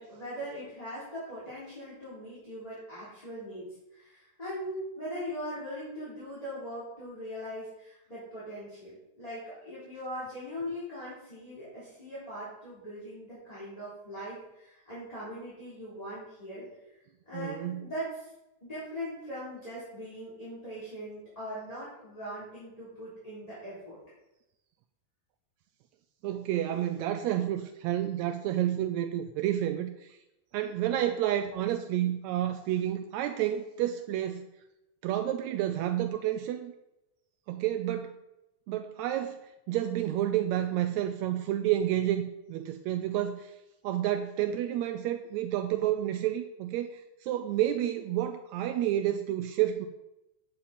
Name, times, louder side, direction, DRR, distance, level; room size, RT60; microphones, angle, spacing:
voice 1, 0.0-16.6 17.2-18.3 18.6-24.0, equal, 10° left, -10 dB, 3.4 m, -40 dB
voice 2, 17.3-17.9 26.2-30.2 30.5-34.5 35.0-36.7 37.5-38.1 38.7-43.6 43.8-49.9, right 12 dB, 80° right, 8 dB, 1.8 m, -30 dB
9.0 x 8.8 x 4.3 m, 0.92 s
omnidirectional pair, 3.3 m